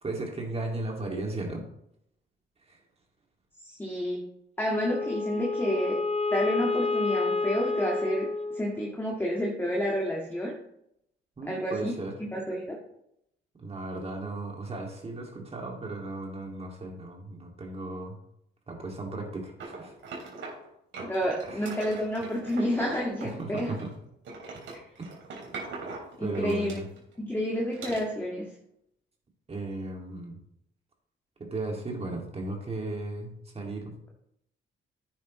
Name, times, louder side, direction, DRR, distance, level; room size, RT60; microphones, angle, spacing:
voice 1, 0.0-1.6 2.7-2.8 11.4-12.2 13.6-18.2 18.7-19.9 21.4-21.7 23.2-23.9 25.0-25.1 26.2-26.8 29.5-30.4 31.4-34.1, right 2 dB, 30° right, 0 dB, 2.4 m, -36 dB
voice 2, 3.6-4.2 4.6-6.0 6.3-10.6 11.5-12.0 12.3-12.8 21.0-23.7 26.2-26.8 27.2-28.5, equal, 10° left, -2 dB, 2.0 m, -30 dB
Wind instrument woodwind instrument, 4.7-9.1, left 3 dB, 35° left, 0.9 m, -29 dB
sound 1, 19.6-20.7 20.9-24.0 24.2-27.2 27.7-28.1, right 3 dB, 70° right, 3.5 m, -41 dB
10.5 x 8.8 x 3.2 m, 0.76 s
cardioid pair, 90°, 20 cm